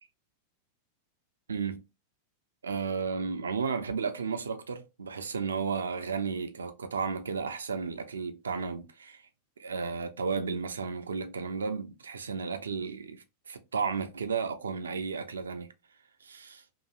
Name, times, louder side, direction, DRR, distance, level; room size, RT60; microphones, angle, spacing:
voice 1, 1.5-1.8 2.6-9.2 9.6-15.7 16.2-16.6, right 5 dB, 70° right, 0.4 m, -33 dB
3.0 x 2.5 x 2.2 m
figure-of-eight pair, 90°, 0 cm